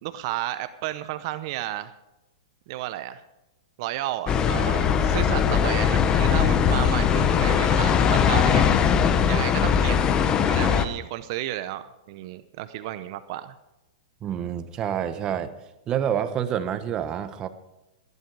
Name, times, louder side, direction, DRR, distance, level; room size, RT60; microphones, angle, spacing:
voice 1, 0.0-1.9 2.7-3.2 3.8-8.9 9.2-10.1 10.5-13.5, right 14 dB, 50° right, 12 dB, 0.8 m, -32 dB
sound 1, 4.3-10.8, left 7 dB, 25° left, 1.0 m, -20 dB
voice 2, 14.2-15.5 15.9-17.5, right 9 dB, 25° right, 10 dB, 1.1 m, -27 dB
16.5 x 11.0 x 4.8 m, 0.97 s
hypercardioid pair, 135°, 3 cm